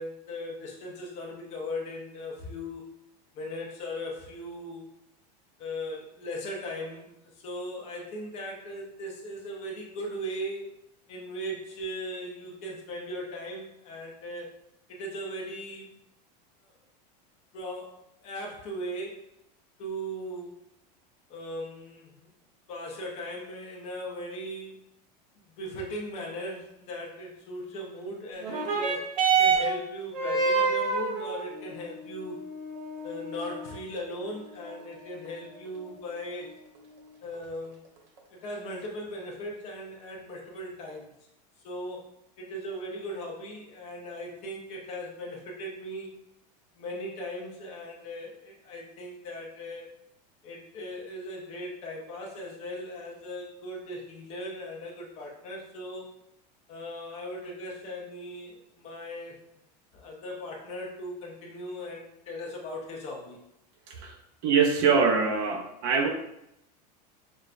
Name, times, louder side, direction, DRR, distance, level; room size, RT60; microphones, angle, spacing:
voice 1, 0.0-2.9 3.3-4.9 5.6-7.1 7.4-10.8 11.1-14.5 14.9-15.9 17.5-18.0 18.2-19.3 19.8-20.5 21.3-22.1 22.7-24.8 25.4-29.1 29.4-32.4 33.0-36.6 37.2-37.8 38.3-41.1 41.6-42.1 42.4-46.1 46.7-49.9 50.4-56.1 56.7-59.4 59.9-63.4, equal, 30° left, -1 dB, 0.7 m, -38 dB
sound 1, 28.4-37.3 38.2-38.3, right 5 dB, 85° right, 1.2 m, -30 dB
voice 2, 64.4-66.1, right 5 dB, 40° right, 4 dB, 0.4 m, -24 dB
6.3 x 2.2 x 2.4 m, 0.81 s
supercardioid pair, 175°, 21 cm